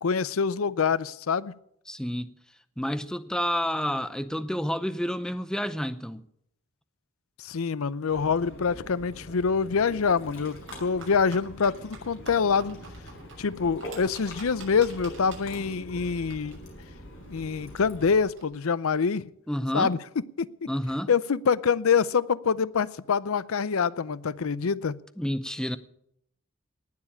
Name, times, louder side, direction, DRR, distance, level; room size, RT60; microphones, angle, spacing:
voice 1, 0.0-1.5 7.4-12.8 13.4-16.6 17.3-19.2 19.7-20.0 20.4-20.7 21.1-25.0, left 5 dB, 85° left, 0.6 m, -25 dB
voice 2, 1.9-2.3 2.8-6.2 19.5-19.9 20.7-21.1 25.2-25.8, equal, 5° left, 0.6 m, -29 dB
Ocean, 8.1-18.2, equal, 70° left, 5.7 m, -44 dB
sound 1, 10.7-18.4, right 4 dB, 60° right, 6.3 m, -50 dB
19.0 x 7.3 x 8.6 m
head